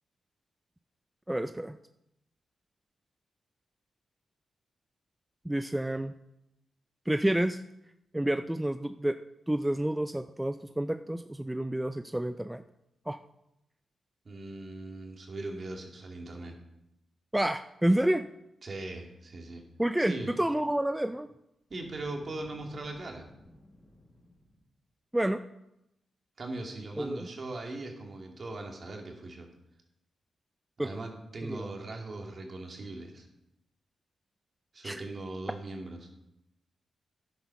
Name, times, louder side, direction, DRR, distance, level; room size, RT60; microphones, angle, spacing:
voice 1, 1.3-1.7 5.5-6.1 7.1-7.6 8.1-9.2 9.5-12.6 13.1-13.2 17.3-18.3 19.8-21.3 25.1-25.4 27.0-27.3 30.8-31.0 31.5-31.6 34.8-35.0, right 1 dB, 10° right, 10 dB, 0.5 m, -29 dB
voice 2, 14.2-16.6 18.6-19.6 20.0-20.3 21.7-23.3 26.4-29.5 30.8-33.2 34.7-36.1, right 2 dB, 50° right, 2 dB, 2.5 m, -40 dB
Boom, 21.6-24.7, left 1 dB, 20° left, 4.4 m, -56 dB
10.0 x 8.1 x 5.9 m, 0.85 s
cardioid pair, 60°, 0 cm